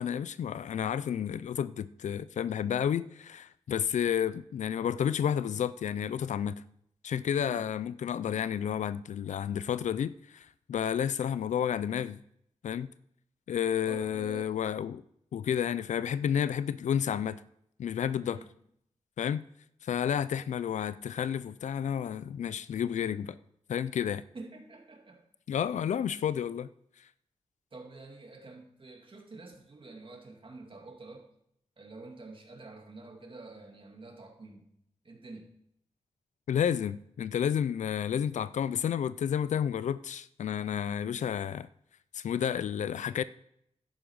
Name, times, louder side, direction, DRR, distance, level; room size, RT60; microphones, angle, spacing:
voice 1, 0.0-6.6 7.0-12.2 12.6-12.9 13.5-15.0 15.3-17.4 17.8-18.4 19.2-19.4 19.8-23.4 23.7-24.2 25.5-26.7 36.5-41.7 42.1-43.2, left 8 dB, 90° left, 0.4 m, -31 dB
voice 2, 13.8-14.5 18.2-18.5 24.3-25.3 27.7-31.3 31.8-34.7 35.0-35.5, right 3 dB, 45° right, 2.5 m, -48 dB
11.5 x 9.0 x 4.7 m
wide cardioid pair, 75°, 12 cm